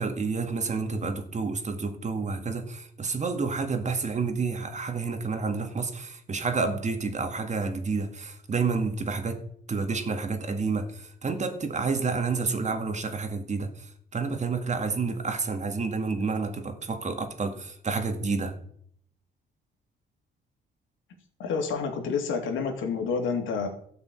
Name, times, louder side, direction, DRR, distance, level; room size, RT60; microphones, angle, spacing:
voice 1, 0.0-9.4 9.7-13.7 14.1-18.5, right 4 dB, 35° right, 2.0 m, -29 dB
voice 2, 21.4-23.7, left 5 dB, 80° left, 2.7 m, -28 dB
13.0 x 5.6 x 8.3 m
cardioid pair, 90°, 20 cm